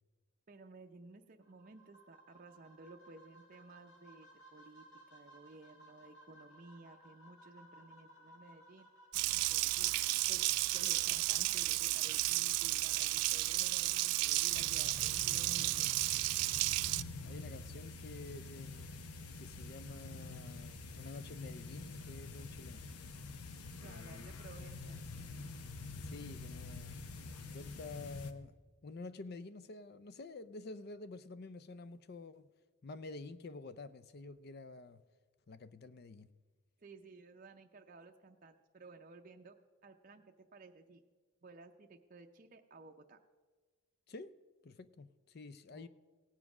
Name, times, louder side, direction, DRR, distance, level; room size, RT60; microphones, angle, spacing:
voice 1, 0.5-4.8 5.1-8.9 9.3-9.9 10.3-15.9 23.8-25.0 36.8-39.6 39.8-41.0 41.4-43.2 45.7-45.9, right 3 dB, 35° right, 0.5 m, -56 dB
sound 1, 1.4-12.4, right 1 dB, 65° left, 4.1 m, -61 dB
Water tap faucet, 9.1-17.0, right 20 dB, 90° right, 0.3 m, -33 dB
sound 2, 14.5-28.3, left 3 dB, 85° left, 0.8 m, -47 dB
voice 2, 17.2-18.9 19.4-22.8 23.8-24.3 26.0-27.0 27.5-28.6 28.8-32.5 32.8-35.0 35.5-36.3 44.1-44.4 44.6-45.9, left 3 dB, 45° left, 0.4 m, -49 dB
17.5 x 7.4 x 6.0 m
head